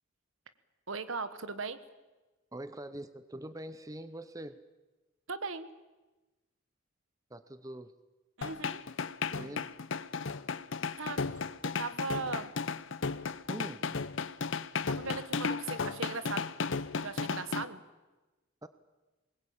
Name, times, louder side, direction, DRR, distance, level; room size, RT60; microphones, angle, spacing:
voice 1, 0.9-1.8 5.3-5.7 8.4-8.8 11.0-11.2 11.6-12.5 14.9-16.5 17.0-17.8, right 4 dB, 70° right, 11 dB, 1.5 m, -38 dB
voice 2, 2.5-4.6 7.3-7.9 9.3-9.8 13.5-13.9 18.6-18.7, right 1 dB, 15° right, 11 dB, 0.7 m, -43 dB
sound 1, 8.4-17.6, left 5 dB, 65° left, 0.7 m, -34 dB
23.5 x 21.0 x 8.8 m, 1.1 s
head